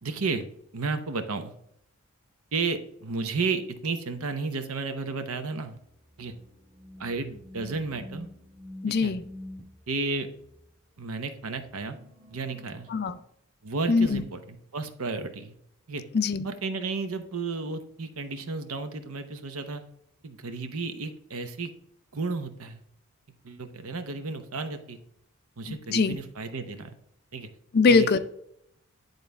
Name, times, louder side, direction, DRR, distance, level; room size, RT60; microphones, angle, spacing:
voice 1, 0.0-0.5 0.7-1.5 2.5-5.8 6.2-6.3 7.0-8.3 8.9-9.1 9.9-10.3 11.0-12.0 12.3-12.9 13.6-15.6 15.9-16.0 16.4-19.8 20.2-21.7 22.1-22.8 23.4-25.0 25.6-26.9 27.3-27.5 27.9-28.2, right 4 dB, 80° right, 8 dB, 0.9 m, -32 dB
sound 1, 6.2-9.7 11.9-13.2, left 1 dB, 35° right, 1.7 m, -46 dB
voice 2, 8.8-9.2 12.9-13.2 13.9-14.2 16.1-16.5 25.7-26.2 27.7-28.2, left 4 dB, 45° left, 13 dB, 0.4 m, -22 dB
10.5 x 4.0 x 3.5 m, 0.73 s
head